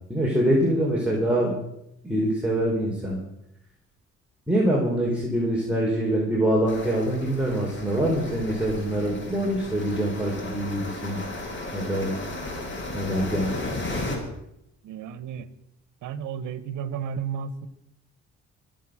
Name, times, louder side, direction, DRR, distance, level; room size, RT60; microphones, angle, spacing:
voice 1, 0.1-1.5 2.0-3.2 4.5-11.2 11.7-12.1 12.9-13.5, right 1 dB, 5° right, -4 dB, 4.6 m, -24 dB
sound 1, 6.7-14.2, left 2 dB, 40° left, 6.3 m, -35 dB
voice 2, 14.8-15.5 16.0-17.7, right 7 dB, 85° right, 14 dB, 1.2 m, -33 dB
24.0 x 8.2 x 6.4 m, 0.81 s
cardioid pair, 90°, 30 cm